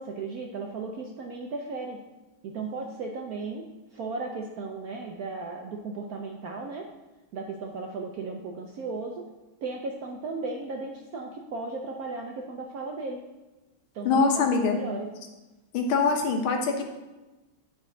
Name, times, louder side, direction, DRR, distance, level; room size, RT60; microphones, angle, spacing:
voice 1, 0.0-2.0 2.4-6.9 7.3-9.3 9.6-13.2 13.9-15.1, right 3 dB, 75° right, 2 dB, 0.8 m, -36 dB
voice 2, 14.0-14.8 15.7-16.8, left 4 dB, 85° left, 3 dB, 1.7 m, -23 dB
9.8 x 4.3 x 3.8 m, 1.1 s
omnidirectional pair, 2.2 m